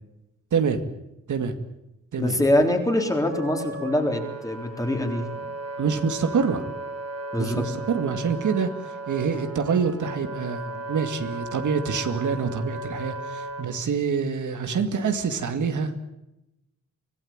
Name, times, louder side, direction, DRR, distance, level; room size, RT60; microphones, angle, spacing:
voice 1, 0.5-0.8 1.3-1.5 2.1-2.4 5.8-6.7 7.4-15.9, right 6 dB, 75° right, 8 dB, 2.3 m, -26 dB
voice 2, 2.2-5.3 7.3-7.6, left 1 dB, 10° left, 4 dB, 3.8 m, -24 dB
Wind instrument woodwind instrument, 2.8-13.7, right 2 dB, 55° right, 3.8 m, -36 dB
24.5 x 17.0 x 8.9 m, 0.91 s
wide cardioid pair, 150°, 30 cm